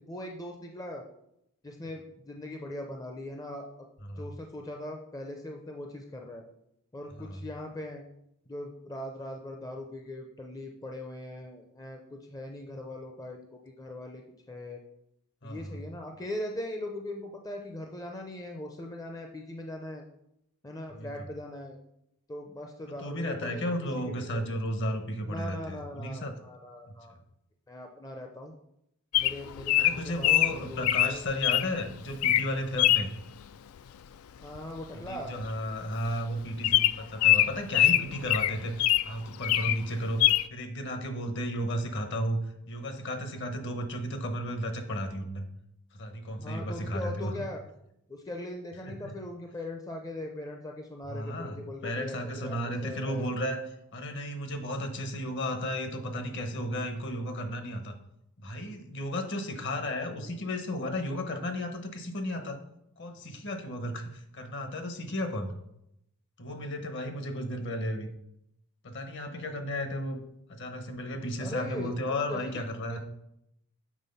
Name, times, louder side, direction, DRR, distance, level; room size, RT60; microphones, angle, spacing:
voice 1, 0.1-1.0 1.6-3.9 4.2-6.4 6.9-8.0 8.5-14.8 15.4-20.0 20.6-21.8 22.3-23.7 24.1-24.6 25.3-27.1 27.7-28.5 29.2-31.2 34.4-35.3 46.3-47.6 48.1-52.6 52.8-53.3 67.0-67.2 71.4-72.6 72.9-73.0, left 1 dB, 15° left, 2 dB, 0.5 m, -40 dB
voice 2, 15.4-15.8 20.9-21.1 23.0-26.3 26.9-27.0 29.8-33.1 35.1-42.4 42.7-45.5 45.9-47.3 48.8-49.2 51.1-53.6 53.9-58.0 58.4-62.6 63.0-65.5 66.4-68.1 68.8-70.2 70.5-73.0, equal, 55° left, 6 dB, 1.0 m, -34 dB
Bird vocalization bird call bird song, 29.1-31.7 32.1-32.5 32.8-33.1 34.6-34.8 35.0-35.1 35.4-35.6 36.1-36.2 36.6-39.1 39.4-39.8 40.2-40.5, left 13 dB, 70° left, 0.3 m, -23 dB
7.4 x 3.8 x 5.4 m, 0.79 s
head